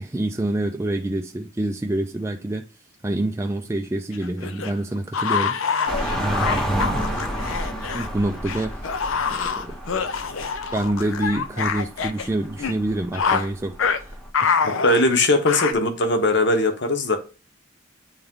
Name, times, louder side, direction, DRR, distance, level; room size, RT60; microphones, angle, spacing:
voice 1, 0.0-2.7 3.0-7.1 7.9-9.0 9.3-9.8 10.7-14.7, right 1 dB, 15° right, 0.3 m, -27 dB
sound 1, 4.1-8.1 8.5-12.3 12.6-12.8 13.1-13.5 13.8-14.0 14.3-15.7, left 6 dB, 85° left, 0.6 m, -25 dB
sound 2, 5.9-14.3, equal, 5° left, 1.0 m, -31 dB
voice 2, 14.8-17.2, left 2 dB, 60° left, 1.0 m, -19 dB
8.9 x 3.4 x 3.6 m
head